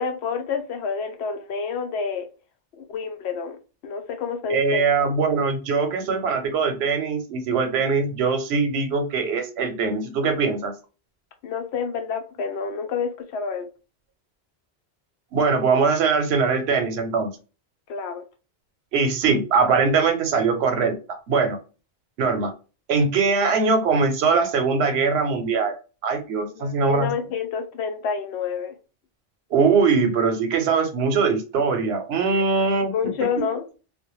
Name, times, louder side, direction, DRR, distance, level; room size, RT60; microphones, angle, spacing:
voice 1, 0.0-2.3 2.8-4.8 11.4-13.7 17.9-18.2 26.6-28.8 32.3-32.4 32.9-33.8, left 6 dB, 90° left, 6 dB, 0.8 m, -29 dB
voice 2, 4.5-10.7 15.3-17.3 18.9-21.6 22.2-22.5 22.9-25.7 26.0-27.1 29.5-32.9, right 4 dB, 85° right, 6 dB, 0.9 m, -21 dB
2.2 x 2.1 x 2.9 m, 0.33 s
omnidirectional pair, 1.1 m